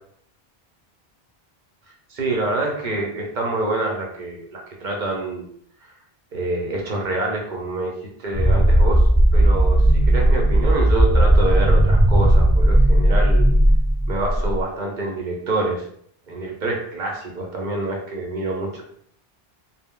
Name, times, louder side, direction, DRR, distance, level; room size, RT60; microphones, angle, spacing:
voice 1, 2.1-5.5 5.8-5.9 6.3-7.9 8.2-9.1 9.3-13.5 14.1-15.8 16.3-18.8, right 2 dB, 55° right, 0 dB, 0.7 m, -26 dB
sound 1, 8.3-14.6, right 1 dB, 30° left, 0.3 m, -16 dB
2.1 x 2.0 x 3.6 m, 0.65 s
omnidirectional pair, 1.0 m